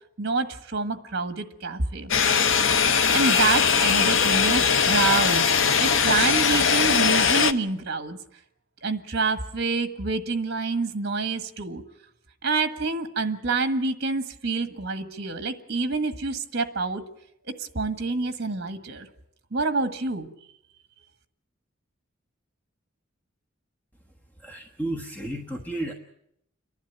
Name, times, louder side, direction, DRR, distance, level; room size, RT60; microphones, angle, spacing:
voice 1, 0.2-2.1 3.1-5.4 5.8-8.2 8.8-11.8 12.4-17.0 17.6-19.1 19.5-20.3, right 4 dB, 55° right, 9 dB, 1.5 m, -27 dB
sound 1, 2.1-7.5, left 6 dB, 70° left, 0.9 m, -20 dB
voice 2, 24.3-25.9, right 1 dB, 10° left, 1 dB, 1.2 m, -33 dB
29.5 x 11.5 x 8.9 m, 0.78 s
head